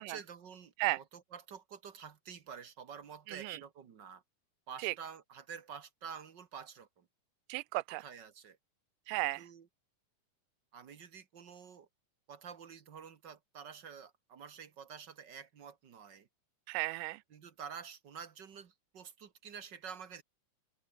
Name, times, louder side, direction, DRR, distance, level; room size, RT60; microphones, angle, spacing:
voice 1, 0.0-4.2 4.7-7.0 7.9-8.6 9.2-9.7 10.7-11.9 12.3-16.3 17.3-20.2, right 7 dB, 50° right, 1.4 m, -49 dB
voice 2, 3.3-3.6 4.8-5.0 7.5-8.1 9.1-9.5 16.7-17.2, right 20 dB, 90° right, 2.2 m, -35 dB
omnidirectional pair, 3.7 m